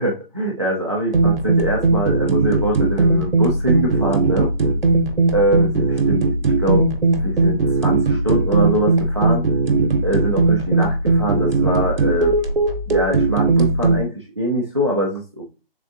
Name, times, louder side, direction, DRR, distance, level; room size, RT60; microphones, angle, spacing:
voice 1, 0.0-4.5 5.3-6.2 6.6-6.9 7.2-9.4 10.0-12.3 12.9-15.4, right 1 dB, 30° right, -2 dB, 0.4 m, -23 dB
sound 1, 1.1-14.0, right 3 dB, 65° right, 0.9 m, -18 dB
3.7 x 3.5 x 2.5 m, 0.31 s
figure-of-eight pair, 170°, 30 cm